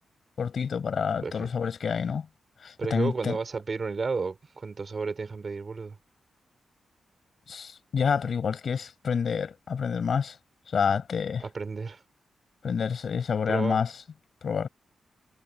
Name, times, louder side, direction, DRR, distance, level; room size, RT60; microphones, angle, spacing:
voice 1, 0.4-2.3 2.6-3.4 7.5-10.4 10.7-11.5 12.6-13.9 14.4-14.7, left 6 dB, 55° left, 7.4 m, -28 dB
voice 2, 1.2-1.5 2.8-6.0 11.4-12.0 13.5-13.8, right 4 dB, 40° right, 5.3 m, -32 dB
wide cardioid pair, 115°, 0 cm